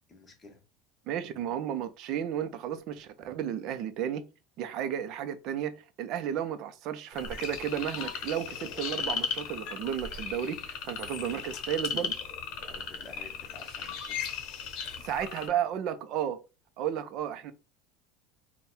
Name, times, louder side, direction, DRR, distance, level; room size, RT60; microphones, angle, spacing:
voice 1, 0.1-0.6 12.7-14.2, left 3 dB, 20° left, 1.2 m, -51 dB
voice 2, 1.1-4.2 4.6-10.6 10.8-12.1 15.0-16.4 16.8-17.5, right 9 dB, 50° right, 0.6 m, -33 dB
sound 1, 7.1-15.5, left 7 dB, 55° left, 0.9 m, -36 dB
3.5 x 2.2 x 4.2 m
supercardioid pair, 135°, 0 cm